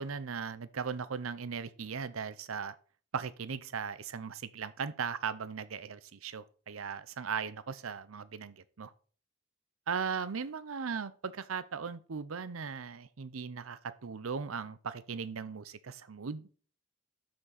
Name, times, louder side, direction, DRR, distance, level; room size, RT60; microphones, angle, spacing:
voice 1, 0.0-2.7 3.1-8.9 9.9-16.5, right 6 dB, 80° right, 0.6 m, -38 dB
12.0 x 6.2 x 4.2 m
head